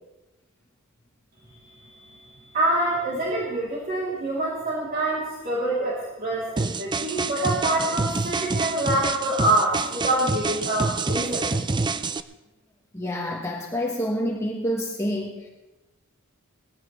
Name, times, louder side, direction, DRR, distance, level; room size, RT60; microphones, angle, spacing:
voice 1, 1.4-11.4, right 1 dB, 45° right, -7 dB, 3.1 m, -26 dB
sound 1, 6.6-12.2, right 3 dB, 20° right, 0.4 m, -27 dB
voice 2, 12.9-15.5, equal, 15° left, -2 dB, 1.3 m, -28 dB
19.5 x 15.5 x 3.2 m, 1.1 s
head